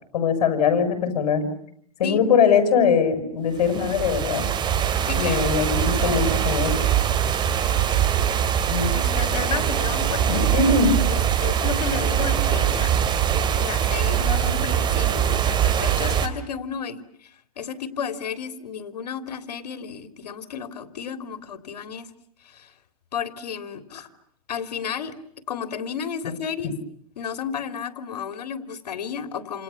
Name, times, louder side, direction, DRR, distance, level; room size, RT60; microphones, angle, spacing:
voice 1, 0.1-1.5 2.0-4.5 5.2-6.9 8.7-8.9 10.3-11.0, left 5 dB, 70° left, 9 dB, 7.8 m, -21 dB
sound 1, 3.6-16.3, right 9 dB, 20° right, 2.9 m, -22 dB
voice 2, 5.0-5.4 5.7-6.2 8.9-10.2 10.5-10.6 11.1-13.0 13.6-22.1 22.4-22.7 23.1-24.0 24.5-25.1 25.5-26.7 27.2-29.6, left 7 dB, 85° left, 10 dB, 3.3 m, -32 dB
29.0 x 28.5 x 7.2 m, 0.67 s
hypercardioid pair, 135°, 20 cm